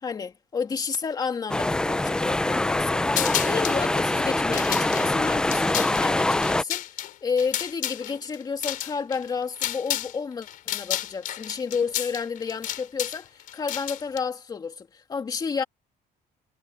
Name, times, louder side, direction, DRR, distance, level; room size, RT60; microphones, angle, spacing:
voice 1, 0.0-15.6, left 5 dB, 25° left, 2.2 m, -31 dB
sound 1, 1.5-6.6, left 2 dB, 5° left, 0.3 m, -24 dB
sound 2, 3.1-3.8 4.4-10.2 10.4-14.2, left 12 dB, 60° left, 4.5 m, -31 dB
cardioid pair, 175°, 16 cm